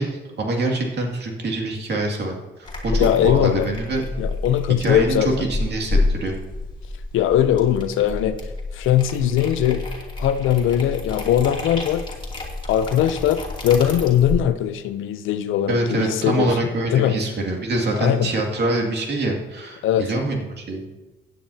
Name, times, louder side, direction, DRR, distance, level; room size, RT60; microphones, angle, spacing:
voice 1, 0.0-2.3 2.8-4.0 4.8-6.4 15.7-20.8, right 2 dB, 55° right, 0 dB, 2.5 m, -24 dB
sound 1, 2.6-14.4, left 2 dB, 25° left, 2.7 m, -29 dB
voice 2, 2.9-3.7 4.2-5.3 7.1-8.4 8.7-9.8 10.2-12.1 12.7-16.6 16.9-17.2 17.9-18.3 19.8-20.1, left 10 dB, 85° left, 11 dB, 0.6 m, -20 dB
16.0 x 9.5 x 2.8 m, 1.1 s
cardioid pair, 90°, 20 cm